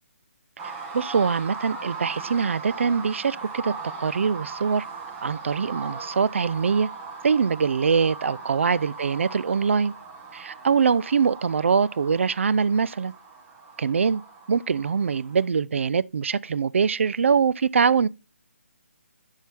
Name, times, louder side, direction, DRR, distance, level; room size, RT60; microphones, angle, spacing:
sound 1, 0.6-15.4, right 4 dB, 15° right, 1.1 m, -39 dB
voice 1, 0.9-4.9 5.2-6.9 7.2-9.9 10.3-13.1 13.8-14.2 14.5-18.1, right 6 dB, 65° right, 0.4 m, -23 dB
10.5 x 4.5 x 3.5 m
hypercardioid pair, 165°, 7 cm